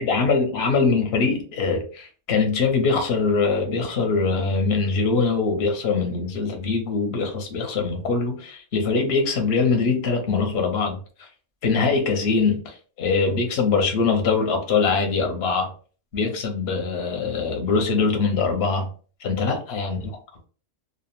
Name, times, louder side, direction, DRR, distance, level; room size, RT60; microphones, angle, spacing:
voice 1, 0.0-11.3 11.6-15.7 16.1-18.9 19.2-20.1, left 4 dB, 60° left, 0.9 m, -23 dB
2.5 x 2.0 x 2.9 m
omnidirectional pair, 1.3 m